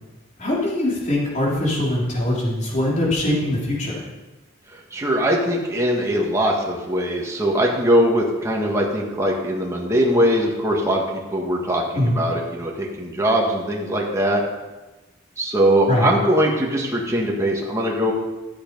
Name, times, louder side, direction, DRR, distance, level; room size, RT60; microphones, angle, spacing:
voice 1, 0.4-4.0 11.9-12.2 15.9-16.1, left 1 dB, 35° left, -4 dB, 3.7 m, -22 dB
voice 2, 4.7-11.0 11.3-14.4 15.4-18.1, equal, 15° right, -2 dB, 1.7 m, -21 dB
13.5 x 7.1 x 5.4 m, 1.1 s
head